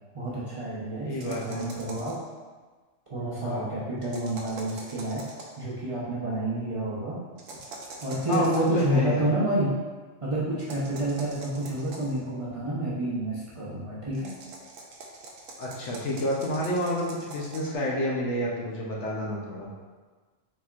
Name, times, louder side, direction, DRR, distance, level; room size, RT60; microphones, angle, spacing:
voice 1, 0.1-2.2 3.1-5.2 5.6-7.2 8.0-9.7 10.2-14.3, right 1 dB, 30° right, -9 dB, 0.8 m, -29 dB
voice 2, 1.0-1.6 3.4-3.7 8.3-9.3 15.6-19.7, equal, 65° left, -3 dB, 1.0 m, -29 dB
sound 1, 1.2-2.3 4.0-5.6 7.4-8.8 10.6-12.2 14.1-17.8, right 2 dB, 85° right, 1.0 m, -44 dB
4.2 x 4.2 x 2.4 m, 1.4 s
omnidirectional pair, 1.3 m